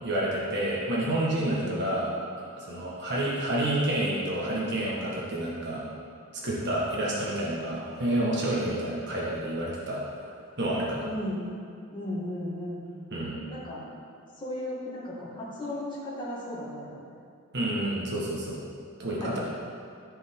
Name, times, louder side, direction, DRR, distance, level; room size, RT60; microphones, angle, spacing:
voice 1, 0.0-2.1 2.6-5.8 6.3-10.0 10.6-11.1 13.1-13.4 17.5-18.6 19.0-19.4, right 1 dB, 55° right, -5 dB, 1.6 m, -29 dB
voice 2, 11.0-11.4 11.9-12.9 13.5-13.8 14.4-17.0 19.2-19.4, left 1 dB, 20° left, -7 dB, 2.2 m, -35 dB
14.0 x 5.4 x 3.8 m, 2.3 s
head